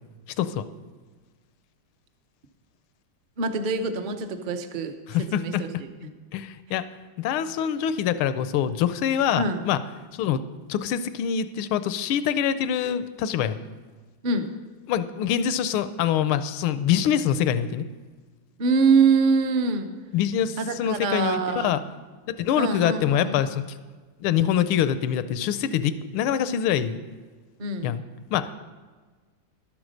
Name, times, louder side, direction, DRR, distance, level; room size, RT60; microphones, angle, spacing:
voice 1, 3.4-4.9 5.3-5.7 6.0-6.1 9.4-9.6 14.2-14.5 18.6-19.9 20.6-21.7 22.6-23.5 27.6-27.9, right 4 dB, 60° right, 7 dB, 0.5 m, -24 dB
voice 2, 5.1-5.6 6.3-6.8 7.2-9.8 10.1-10.4 10.7-13.6 14.9-17.8 20.1-21.8 22.4-23.6 24.2-27.0 27.8-28.0 28.3-28.5, left 9 dB, 85° left, 13 dB, 1.5 m, -25 dB
12.0 x 9.4 x 6.5 m, 1.4 s
omnidirectional pair, 2.2 m